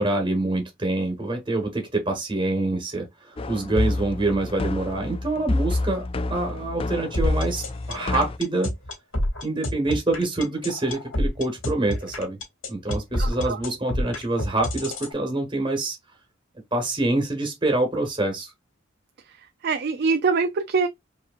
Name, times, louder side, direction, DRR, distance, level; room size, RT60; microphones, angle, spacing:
voice 1, 0.0-6.0 6.3-8.7 9.4-12.4 12.7-16.0 16.7-18.5, right 2 dB, 25° right, 1.2 m, -26 dB
sound 1, 3.4-8.4, left 2 dB, 30° left, 0.4 m, -28 dB
sound 2, 7.1-15.1, left 1 dB, 85° left, 2.3 m, -28 dB
voice 2, 13.2-13.6 19.6-20.9, right 4 dB, 55° right, 0.4 m, -23 dB
4.9 x 2.9 x 2.5 m
head